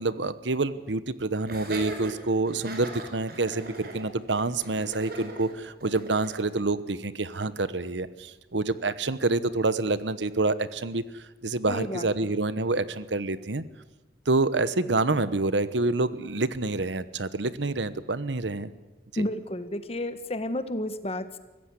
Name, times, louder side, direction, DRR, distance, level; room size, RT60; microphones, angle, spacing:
voice 1, 0.0-13.6 14.3-18.7 19.1-19.3, right 3 dB, 85° right, 15 dB, 1.1 m, -27 dB
Laughter, 1.5-6.4, right 2 dB, 55° right, 5.2 m, -40 dB
voice 2, 11.7-12.3 19.2-21.4, left 1 dB, 35° left, 11 dB, 1.5 m, -32 dB
24.0 x 15.5 x 9.8 m, 1.1 s
head